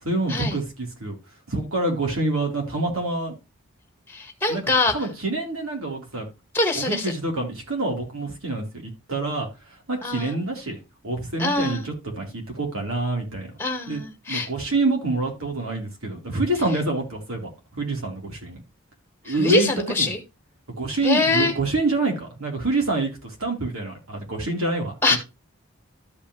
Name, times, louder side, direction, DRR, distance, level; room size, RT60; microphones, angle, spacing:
voice 1, 0.0-1.2 1.5-3.4 4.5-4.6 4.9-6.3 6.8-9.5 9.9-13.5 13.9-14.0 14.3-18.6 19.2-20.1 20.8-25.2, right 2 dB, 85° right, 4.2 m, -26 dB
voice 2, 4.1-4.9 6.5-7.1 10.0-10.3 11.4-11.9 13.6-14.5 19.3-20.2 21.0-21.5 25.0-25.2, left 3 dB, 10° left, 1.9 m, -23 dB
13.5 x 5.5 x 3.3 m
head